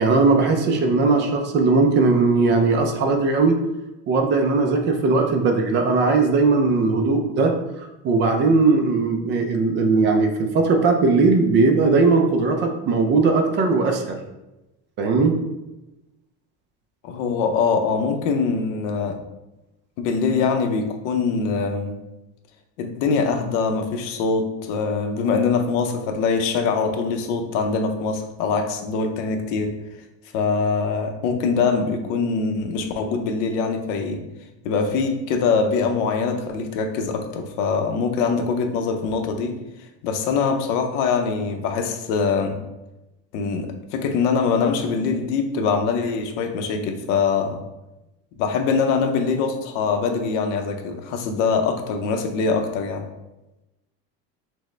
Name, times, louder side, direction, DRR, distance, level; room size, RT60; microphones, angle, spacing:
voice 1, 0.0-3.6 4.1-7.5 8.0-14.2 15.0-15.4, right 3 dB, 30° right, 4 dB, 0.4 m, -19 dB
voice 2, 17.0-19.2 20.0-21.9 22.8-29.8 30.3-34.2 34.6-42.6 43.3-47.6 48.4-53.0, left 5 dB, 85° left, 5 dB, 0.7 m, -23 dB
6.0 x 2.1 x 3.2 m, 0.99 s
cardioid pair, 170°, 35 cm